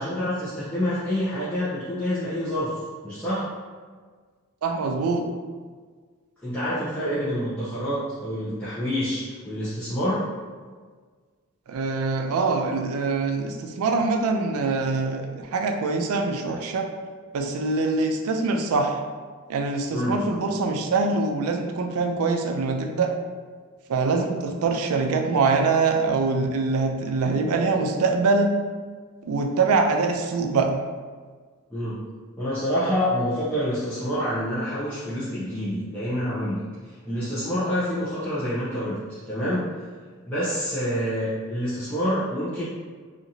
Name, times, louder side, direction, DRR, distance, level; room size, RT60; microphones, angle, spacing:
voice 1, 0.0-3.5 6.4-10.3 19.9-20.2 31.7-32.1 32.4-39.6 40.3-42.6, equal, 5° left, -13 dB, 0.6 m, -27 dB
voice 2, 4.6-5.3 11.7-16.9 17.3-19.0 19.5-23.1 23.9-28.5 29.3-30.8, right 3 dB, 85° right, 4 dB, 0.4 m, -24 dB
2.8 x 2.4 x 2.7 m, 1.5 s
head